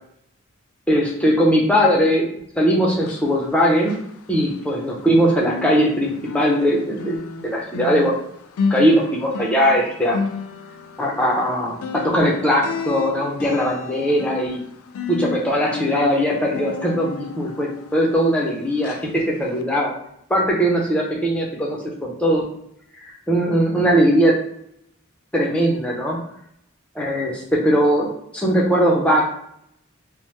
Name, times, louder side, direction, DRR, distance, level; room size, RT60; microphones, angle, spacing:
voice 1, 0.9-2.3 2.6-3.9 4.3-7.2 7.4-8.1 8.7-10.2 11.0-11.8 12.1-14.6 15.1-19.9 20.3-22.4 22.9-24.3 25.3-26.2 26.9-28.1 28.3-29.2, equal, 5° left, -3 dB, 0.5 m, -19 dB
sound 1, 2.9-5.1 5.3-18.5 18.8-19.1 19.6-19.7, left 5 dB, 90° left, 0.3 m, -32 dB
2.9 x 2.0 x 3.1 m, 0.73 s
head